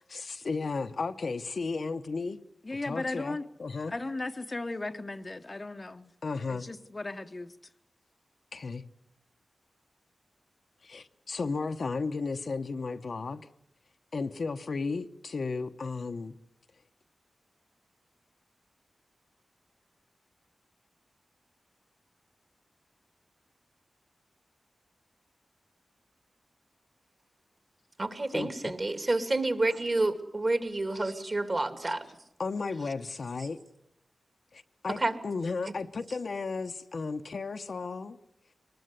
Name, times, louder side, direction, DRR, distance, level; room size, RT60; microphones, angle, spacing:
voice 1, 0.1-2.4 2.9-3.9 6.2-6.7 8.5-8.8 10.8-13.5 14.1-16.4 28.3-28.7 32.4-33.6 34.5-38.2, left 4 dB, 65° left, 0.9 m, -34 dB
voice 2, 2.6-3.5 3.9-6.1 6.5-7.5, left 2 dB, 30° left, 0.9 m, -36 dB
voice 3, 28.0-32.1 35.0-35.1, right 2 dB, 40° right, 2.6 m, -29 dB
23.0 x 20.0 x 8.2 m
wide cardioid pair, 85°, 0 cm